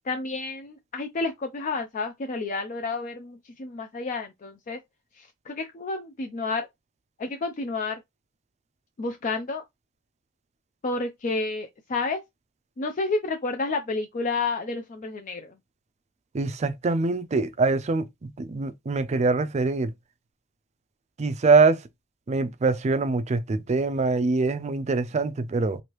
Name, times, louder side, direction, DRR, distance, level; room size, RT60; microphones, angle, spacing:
voice 1, 0.1-4.8 5.5-6.7 7.2-8.0 9.0-9.6 10.8-12.2 12.8-15.5, left 3 dB, 35° left, 0.4 m, -30 dB
voice 2, 16.3-18.1 18.4-19.9 21.2-21.8 22.3-25.8, right 3 dB, 30° right, 0.4 m, -23 dB
3.2 x 2.5 x 2.9 m
head